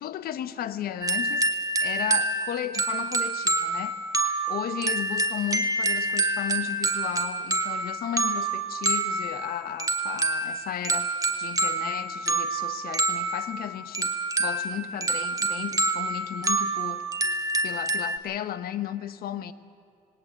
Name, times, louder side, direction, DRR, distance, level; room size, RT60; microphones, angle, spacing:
voice 1, 0.0-1.5 1.8-4.0 4.5-17.0 17.6-19.5, left 11 dB, 65° left, 1.0 m, -34 dB
sound 1, 1.0-18.2, right 2 dB, 20° right, 1.6 m, -27 dB
20.5 x 18.0 x 8.1 m
cardioid pair, 110°, 17 cm